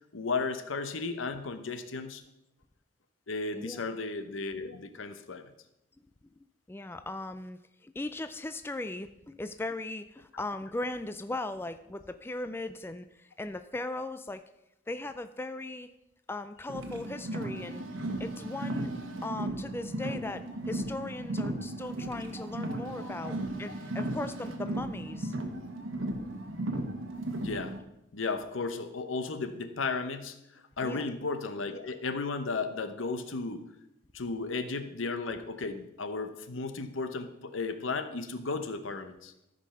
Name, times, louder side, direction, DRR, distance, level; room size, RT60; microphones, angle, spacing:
voice 1, 0.1-2.2 3.3-5.5 22.7-22.8 27.4-27.8 28.1-30.4 30.8-33.7 34.1-39.3, left 4 dB, 80° left, 9 dB, 0.9 m, -34 dB
voice 2, 6.7-14.4 14.9-15.9 16.3-17.8 18.2-18.9 19.2-25.4 30.8-31.1, left 2 dB, 10° left, 10 dB, 0.3 m, -38 dB
Car, 16.7-27.8, right 1 dB, 90° right, 1.2 m, -36 dB
13.5 x 5.3 x 5.6 m, 0.87 s
head